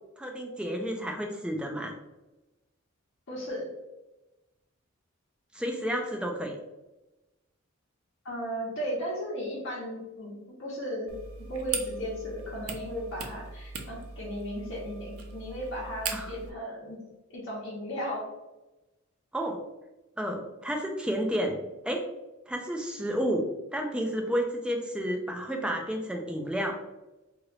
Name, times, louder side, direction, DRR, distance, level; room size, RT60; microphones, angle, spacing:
voice 1, 0.2-1.9 5.5-6.5 16.1-16.3 19.3-19.6 20.2-22.0 22.5-26.8, equal, 5° right, 2 dB, 0.3 m, -31 dB
voice 2, 3.3-3.7 8.2-10.3 10.6-11.1 11.5-17.0 17.3-18.3, equal, 60° left, -6 dB, 0.9 m, -35 dB
sound 1, 11.1-16.5, right 5 dB, 85° right, 0.5 m, -39 dB
2.9 x 2.6 x 3.1 m, 1.0 s
head